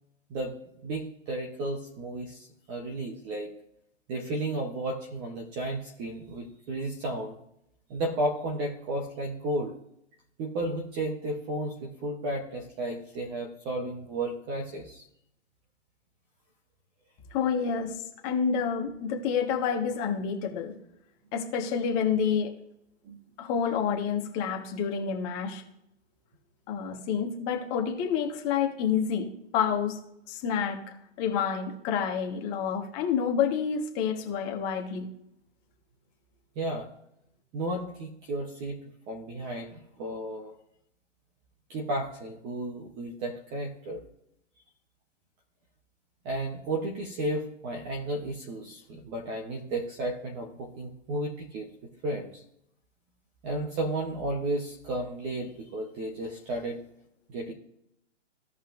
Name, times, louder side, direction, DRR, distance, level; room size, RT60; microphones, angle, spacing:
voice 1, 0.8-3.5 4.1-7.4 7.9-9.7 10.4-15.0 23.0-23.2 36.6-36.9 37.5-38.8 39.1-40.5 41.7-44.0 46.2-52.4 53.4-56.8 57.3-57.5, right 1 dB, 15° right, 1 dB, 0.8 m, -33 dB
voice 2, 17.3-20.7 21.3-22.5 23.4-25.6 26.7-29.3 29.5-30.0 30.3-30.8 31.2-35.1, left 7 dB, 20° left, 2 dB, 1.3 m, -28 dB
16.0 x 5.4 x 2.5 m, 0.78 s
hypercardioid pair, 155°, 36 cm